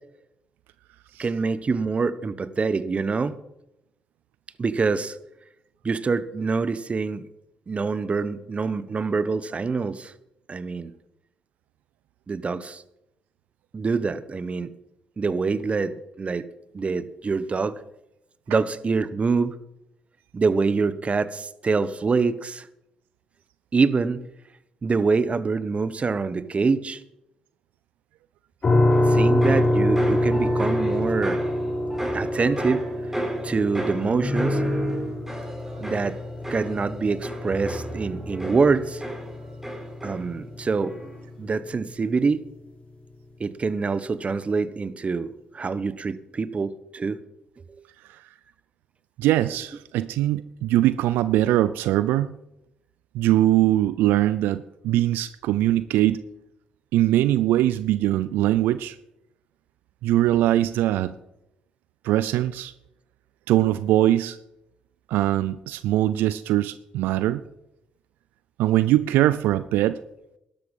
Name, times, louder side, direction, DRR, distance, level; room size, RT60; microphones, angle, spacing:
voice 1, 1.2-3.3 4.6-5.2 5.8-7.2 7.7-10.1 10.5-10.9 12.3-12.8 13.7-14.7 15.2-16.4 16.7-17.8 18.5-19.5 20.3-22.7 23.7-24.2 24.8-27.0 29.1-31.4 32.1-32.8 33.4-34.6 35.8-36.2 36.5-39.0 40.0-40.9 41.4-42.4 43.4-47.2 47.7-47.8, right 4 dB, 40° right, 15 dB, 1.0 m, -25 dB
sound 1, 28.6-41.5, left 1 dB, 40° left, 5.0 m, -26 dB
sound 2, 28.9-40.5 40.8-41.3, equal, 10° right, 4.3 m, -33 dB
voice 2, 49.2-52.4 53.1-56.2 56.9-58.9 60.0-61.2 62.0-62.7 63.5-64.4 65.1-67.4 68.6-70.0, right 14 dB, 80° right, 15 dB, 0.4 m, -21 dB
12.5 x 12.5 x 5.4 m, 0.85 s
supercardioid pair, 55°, 3 cm